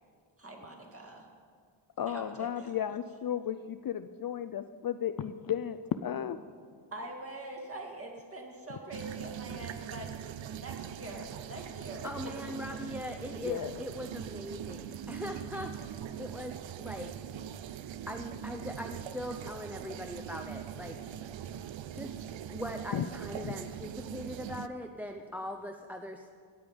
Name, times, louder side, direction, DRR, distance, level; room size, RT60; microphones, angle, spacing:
voice 1, 0.4-1.3 2.1-2.7 6.9-10.1 10.5-12.3, right 1 dB, 30° right, 1 dB, 2.2 m, -44 dB
voice 2, 2.0-6.4 13.4-13.8 22.9-23.1 23.4-23.5, left 9 dB, 50° left, 11 dB, 0.5 m, -34 dB
sound 1, 8.9-24.7, right 9 dB, 70° right, 0.6 m, -42 dB
voice 3, 12.0-17.1 18.1-21.0 21.9-22.2 22.5-26.3, left 1 dB, 5° right, 4 dB, 0.5 m, -41 dB
16.0 x 8.7 x 5.2 m, 2.1 s
wide cardioid pair, 105°, 47 cm